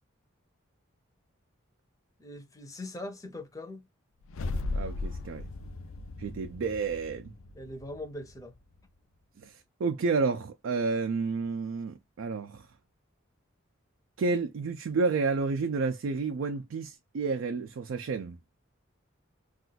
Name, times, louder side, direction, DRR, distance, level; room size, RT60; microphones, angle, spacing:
voice 1, 2.2-3.8 7.5-8.6, left 1 dB, 15° left, 0.5 m, -41 dB
sound 1, 4.2-8.6, left 2 dB, 90° left, 0.4 m, -37 dB
voice 2, 4.7-5.4 6.2-7.3 9.4-9.5 9.8-12.6 14.2-18.4, right 4 dB, 75° right, 0.4 m, -30 dB
2.4 x 2.3 x 3.9 m
head